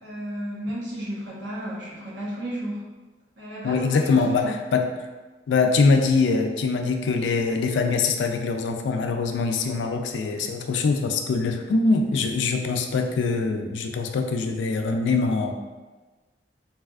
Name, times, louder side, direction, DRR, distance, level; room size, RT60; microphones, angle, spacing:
voice 1, 0.0-2.8 3.4-4.5, right 1 dB, 85° right, -7 dB, 1.0 m, -33 dB
voice 2, 3.6-4.9 5.5-15.5, left 4 dB, 85° left, 5 dB, 0.3 m, -23 dB
3.3 x 2.4 x 2.3 m, 1.3 s
head